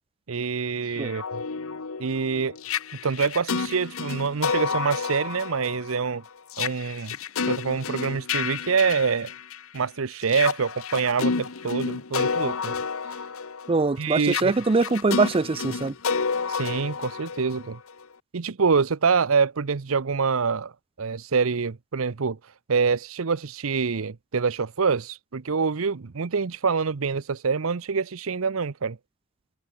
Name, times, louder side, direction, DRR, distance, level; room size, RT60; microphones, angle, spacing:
voice 1, 0.3-1.4 2.0-2.6 3.0-6.2 6.6-7.1 7.4-9.3 9.7-12.8 14.0-14.5 16.5-17.8 18.3-20.7 21.0-22.4 22.7-29.0, right 5 dB, 75° right, 0.7 m, -26 dB
sound 1, 0.9-9.8 10.2-18.0, left 5 dB, 80° left, 1.0 m, -30 dB
voice 2, 13.7-15.9, right 3 dB, 25° right, 0.5 m, -23 dB
head